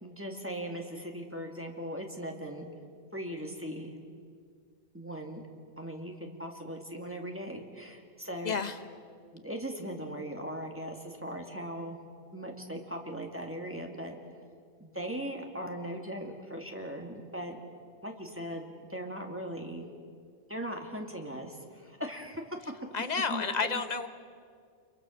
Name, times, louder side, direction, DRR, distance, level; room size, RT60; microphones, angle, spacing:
voice 1, 0.0-2.7 3.1-3.9 4.9-5.4 5.8-8.6 9.3-12.0 12.3-14.2 14.8-17.6 18.0-19.9 20.5-22.4 23.3-23.8, equal, 10° right, 2 dB, 2.1 m, -39 dB
voice 2, 8.4-8.8 22.9-24.1, left 5 dB, 40° left, 9 dB, 1.2 m, -30 dB
27.5 x 23.0 x 6.4 m, 2.1 s
omnidirectional pair, 1.1 m